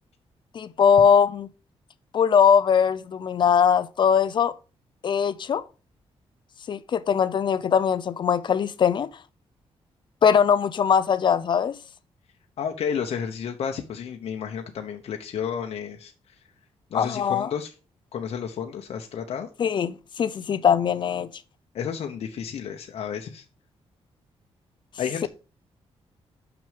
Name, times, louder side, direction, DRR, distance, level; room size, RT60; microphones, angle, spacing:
voice 1, 0.5-1.5 2.1-4.5 5.0-5.6 6.7-9.1 10.2-11.8 16.9-17.5 19.6-21.3, left 7 dB, 45° left, 0.5 m, -21 dB
voice 2, 12.6-16.1 16.9-17.7 18.1-19.5 21.7-23.4 25.0-25.3, left 7 dB, 70° left, 0.9 m, -31 dB
6.3 x 6.0 x 5.1 m
wide cardioid pair, 165°, 11 cm